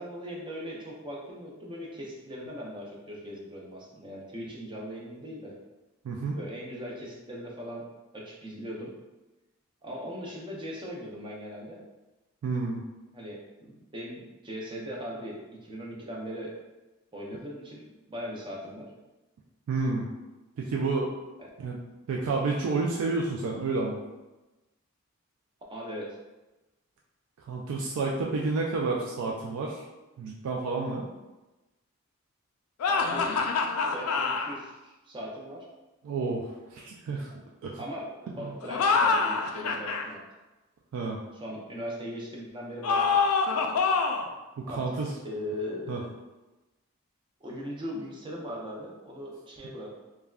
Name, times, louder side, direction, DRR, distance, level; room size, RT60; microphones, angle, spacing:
voice 1, 0.0-5.5 6.3-7.8 8.1-8.9 9.8-11.8 13.1-16.5 17.1-18.9 21.4-21.5 25.7-26.2 32.9-33.4 33.9-35.6 37.1-37.2 37.8-40.2 41.3-43.0 44.6-44.8 45.2-46.1 47.4-50.0, equal, 20° right, -3 dB, 0.5 m, -39 dB
voice 2, 6.0-6.4 12.4-12.8 19.7-20.1 20.6-21.1 21.6-21.8 22.1-24.0 27.5-29.8 30.2-31.0 36.0-37.3 37.6-37.8 40.9-41.2 44.6-45.1 45.9-46.0, right 3 dB, 85° right, -2 dB, 0.3 m, -30 dB
sound 1, 32.8-34.5 38.6-40.1 42.8-44.3, left 4 dB, 90° left, 0.3 m, -25 dB
3.4 x 2.2 x 2.3 m, 1.1 s
head